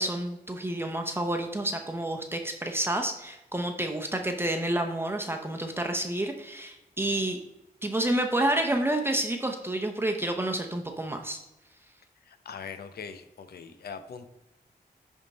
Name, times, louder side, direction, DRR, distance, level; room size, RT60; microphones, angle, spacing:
voice 1, 0.0-7.4 7.8-11.4, right 1 dB, 15° right, 3 dB, 0.8 m, -29 dB
voice 2, 12.3-14.3, left 6 dB, 85° left, 9 dB, 0.7 m, -41 dB
11.0 x 3.6 x 4.1 m, 0.93 s
wide cardioid pair, 110°, 16 cm